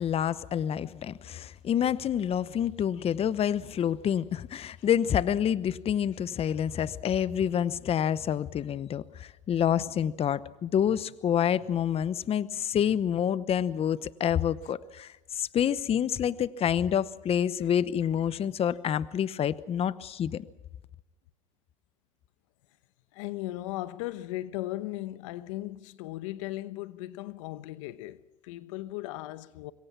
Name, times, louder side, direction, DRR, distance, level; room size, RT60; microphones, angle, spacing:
voice 1, 0.0-20.5, left 9 dB, 35° left, 0.9 m, -28 dB
voice 2, 23.1-29.7, left 16 dB, 75° left, 1.0 m, -37 dB
26.0 x 22.5 x 6.0 m
hypercardioid pair, 85°, 16 cm